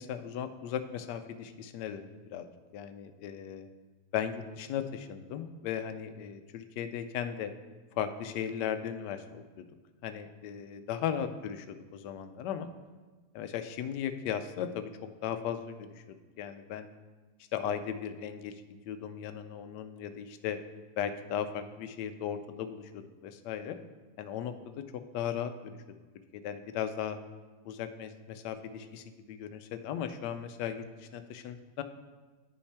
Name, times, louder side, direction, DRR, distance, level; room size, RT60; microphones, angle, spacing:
voice 1, 0.0-2.5 2.7-3.7 4.1-7.5 7.9-9.7 10.0-12.7 13.3-14.9 15.2-16.9 17.5-18.5 18.9-20.6 21.0-23.8 24.2-25.8 26.3-27.2 27.6-31.8, left 9 dB, 85° left, 10 dB, 1.2 m, -37 dB
10.0 x 5.5 x 3.4 m, 1.3 s
omnidirectional pair, 1.8 m